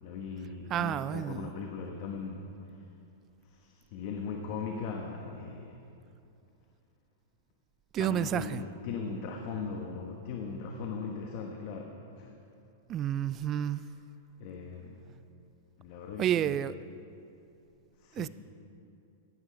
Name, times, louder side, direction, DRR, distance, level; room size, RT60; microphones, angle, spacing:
voice 1, 0.0-2.8 3.4-5.8 8.0-12.4 14.4-15.0 15.8-16.5 18.0-18.3, left 5 dB, 50° left, 1.2 m, -39 dB
voice 2, 0.7-1.5 7.9-8.6 12.9-13.8 16.2-16.7 18.1-18.3, right 11 dB, 30° right, 0.4 m, -30 dB
15.5 x 9.8 x 5.2 m
hypercardioid pair, 130°, 0 cm